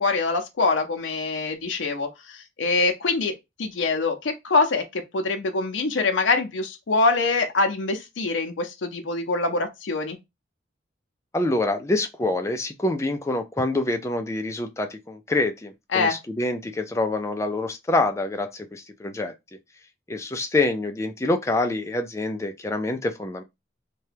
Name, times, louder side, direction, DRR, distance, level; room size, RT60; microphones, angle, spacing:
voice 1, 0.0-3.3 3.6-10.2 15.9-16.2, left 3 dB, 90° left, 0.5 m, -24 dB
voice 2, 11.3-19.3 20.1-23.4, left 2 dB, 15° left, 0.3 m, -26 dB
2.8 x 2.2 x 3.2 m
head